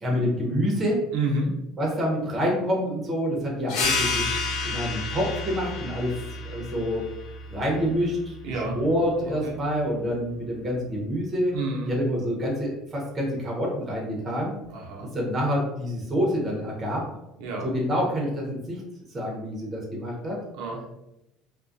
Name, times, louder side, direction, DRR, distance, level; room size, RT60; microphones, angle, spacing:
voice 1, 0.0-1.0 1.8-4.2 4.6-6.1 6.4-7.0 7.5-11.5 11.9-14.5 15.1-17.0 17.6-18.8 19.1-20.4, equal, 20° right, -2 dB, 0.7 m, -27 dB
voice 2, 1.1-1.5 8.4-8.8 9.2-9.6 11.5-11.9 14.7-15.1 17.4-17.7 20.5-20.8, right 2 dB, 85° right, -1 dB, 0.5 m, -29 dB
sound 1, 3.7-8.9, left 3 dB, 70° left, 0.5 m, -31 dB
2.3 x 2.1 x 2.5 m, 0.86 s
cardioid pair, 150°, 0 cm